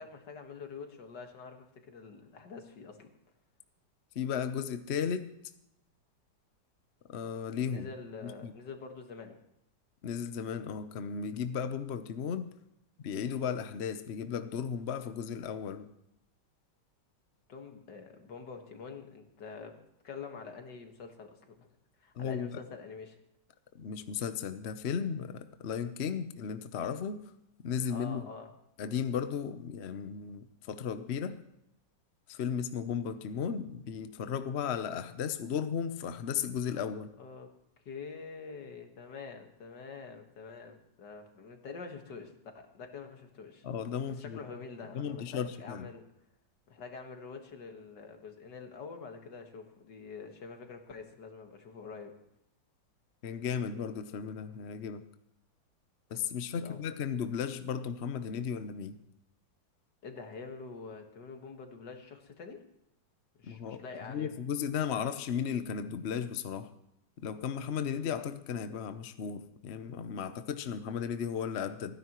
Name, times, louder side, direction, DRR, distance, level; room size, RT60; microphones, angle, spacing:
voice 1, 0.0-3.1 7.7-9.4 17.5-19.8 20.0-21.7 22.0-23.2 27.9-28.5 37.2-37.5 37.9-43.7 44.1-46.1 46.7-52.1 56.6-56.8 60.0-62.6 63.4-64.3, left 5 dB, 70° left, 5 dB, 2.2 m, -46 dB
voice 2, 4.1-5.3 7.1-7.9 8.2-8.5 10.0-12.5 13.0-15.9 22.2-22.6 23.7-27.2 27.6-28.3 28.8-31.4 32.3-37.1 43.6-44.4 44.9-45.9 53.2-55.0 56.1-59.0 63.5-66.7 67.2-71.9, left 7 dB, 55° left, 10 dB, 0.8 m, -35 dB
29.0 x 10.5 x 3.0 m, 0.80 s
omnidirectional pair, 2.0 m